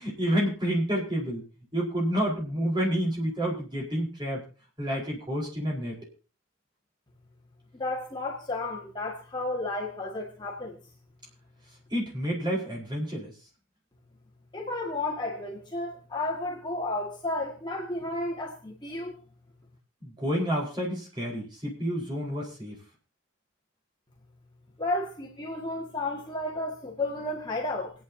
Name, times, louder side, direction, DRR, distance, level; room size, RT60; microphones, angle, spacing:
voice 1, 0.0-1.4 1.7-4.4 4.8-5.9 11.9-13.3 20.0-22.8, equal, 20° right, 4.6 m, -29 dB
voice 2, 7.8-10.8 14.5-19.2 24.8-27.9, left 2 dB, 20° left, 1.9 m, -32 dB
27.5 x 9.3 x 2.8 m
head